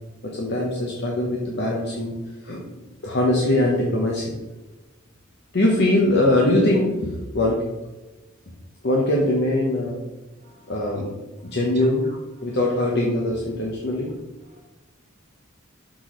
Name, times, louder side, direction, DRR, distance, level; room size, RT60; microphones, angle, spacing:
voice 1, 0.2-2.1 2.4-2.6 3.0-4.4 5.5-7.6 8.8-10.0 10.7-11.1 11.4-12.0 12.4-14.1, left 1 dB, 55° left, -2 dB, 1.0 m, -22 dB
voice 2, 10.4-11.0 11.4-12.6 14.5-14.6, right 2 dB, 35° right, -1 dB, 1.6 m, -50 dB
6.3 x 6.0 x 3.1 m, 1.1 s
head